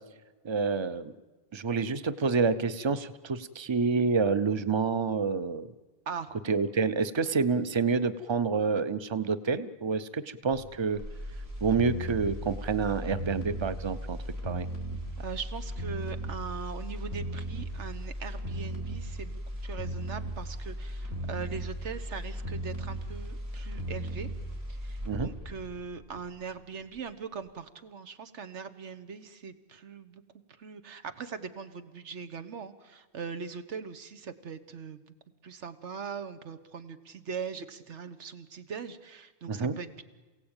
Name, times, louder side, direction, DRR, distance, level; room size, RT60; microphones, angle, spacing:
voice 1, 0.4-1.1 1.5-5.7 6.5-11.0 11.6-14.2 14.4-14.7 25.1-25.3 39.5-39.8, right 5 dB, 30° right, 12 dB, 0.7 m, -28 dB
sound 1, 10.5-26.6 27.0-27.1, equal, 65° right, 3.4 m, -37 dB
voice 2, 15.2-24.3 24.7-30.2 30.6-35.0 35.4-40.0, right 6 dB, 85° right, 11 dB, 1.5 m, -40 dB
27.5 x 17.0 x 8.9 m, 1.3 s
omnidirectional pair, 1.2 m